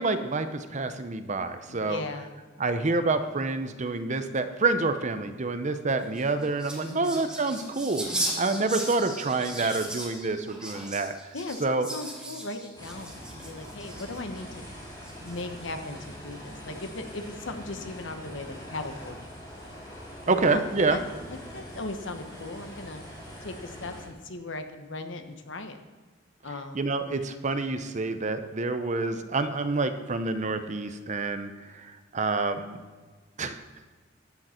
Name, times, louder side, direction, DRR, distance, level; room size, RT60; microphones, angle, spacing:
voice 1, 0.0-2.0 2.6-8.1 8.4-11.2 11.6-11.9 20.3-21.0 26.7-32.8 33.4-33.6, right 3 dB, 35° right, 9 dB, 0.7 m, -27 dB
voice 2, 1.7-2.3 6.8-7.3 11.3-14.6 15.2-19.2 20.2-21.0 21.3-23.0 23.4-25.8 26.4-27.0, left 2 dB, 65° left, 7 dB, 1.1 m, -38 dB
sound 1, 6.0-14.4 15.0-15.6, right 1 dB, 5° right, 2.2 m, -37 dB
sound 2, 12.7-24.1, equal, 20° left, 4.3 m, -43 dB
14.0 x 10.0 x 4.4 m, 1.4 s
head